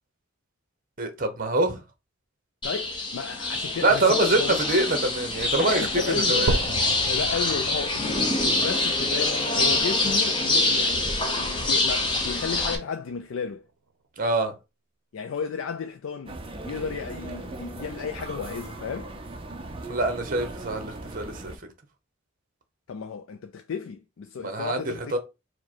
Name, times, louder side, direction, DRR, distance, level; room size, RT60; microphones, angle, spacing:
voice 1, 1.0-1.8 3.8-6.6 14.2-14.5 19.9-21.5 24.4-25.2, right 2 dB, 40° right, 0.9 m, -25 dB
voice 2, 2.6-4.6 5.6-6.7 7.1-13.7 15.1-16.4 16.6-19.1 22.9-25.2, left 6 dB, 70° left, 0.4 m, -33 dB
sound 1, 2.6-12.8, left 2 dB, 20° left, 0.7 m, -25 dB
sound 2, 6.5-10.5 11.0-11.1 11.7-11.8 12.1-12.2 13.1-13.2, right 3 dB, 85° right, 0.6 m, -33 dB
sound 3, 16.3-21.6, right 2 dB, 25° right, 0.5 m, -38 dB
4.6 x 2.1 x 4.4 m
head